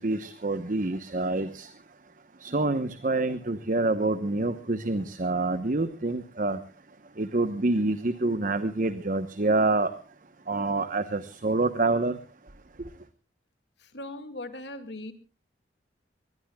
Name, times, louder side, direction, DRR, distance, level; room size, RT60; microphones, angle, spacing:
voice 1, 0.0-1.7 2.4-6.6 7.2-9.9 10.5-12.2, right 2 dB, 45° right, 1.0 m, -27 dB
voice 2, 13.8-15.1, left 1 dB, 70° left, 2.1 m, -39 dB
23.5 x 20.5 x 2.3 m
head